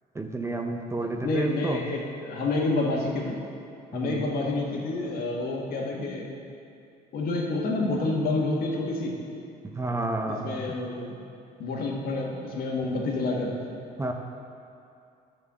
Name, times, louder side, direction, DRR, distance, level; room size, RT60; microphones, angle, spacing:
voice 1, 0.1-1.8 3.9-4.3 9.6-10.8 14.0-14.1, right 2 dB, 15° right, 3 dB, 0.7 m, -30 dB
voice 2, 1.0-3.4 3.9-6.3 7.1-9.2 10.3-11.2 11.6-13.6, left 2 dB, 65° left, -1 dB, 1.7 m, -28 dB
10.5 x 4.6 x 6.9 m, 2.6 s
cardioid pair, 110°, 17 cm